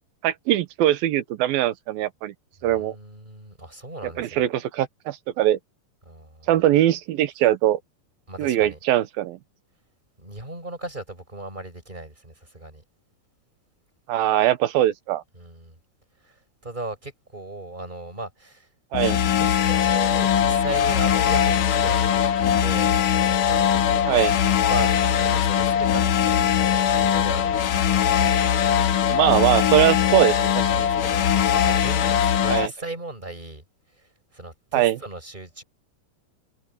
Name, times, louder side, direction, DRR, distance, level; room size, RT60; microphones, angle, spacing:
voice 1, 0.2-2.3 2.6-3.0 4.0-4.9 5.4-5.6 6.5-7.8 8.4-9.4 14.1-15.2 18.9-19.2 24.1-24.3 29.1-30.9 32.5-32.7 34.7-35.0, right 13 dB, 80° right, 2.7 m, -21 dB
voice 2, 2.6-4.4 6.1-6.5 8.3-8.8 10.2-12.8 15.4-15.8 16.2-16.4 16.6-18.7 19.4-22.9 23.4-24.1 24.4-28.1 30.0-30.3 30.7-33.6 34.3-35.6, right 2 dB, 10° right, 7.6 m, -37 dB
sound 1, 18.9-32.7, left 9 dB, 65° left, 2.8 m, -21 dB
omnidirectional pair, 4.4 m